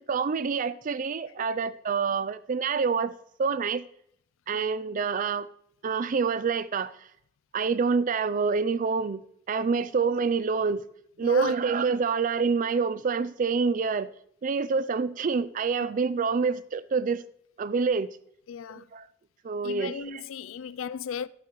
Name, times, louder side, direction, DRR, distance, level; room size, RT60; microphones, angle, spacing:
voice 1, 0.0-3.1 3.4-3.8 4.5-5.5 5.8-6.9 7.5-9.2 9.5-10.8 11.2-14.1 14.4-17.2 17.6-18.2 18.7-19.1 19.4-20.2, right 5 dB, 40° right, 0.4 m, -27 dB
voice 2, 11.2-11.5 18.5-18.8 19.6-21.3, left 7 dB, 85° left, 0.4 m, -36 dB
13.0 x 11.0 x 3.1 m
head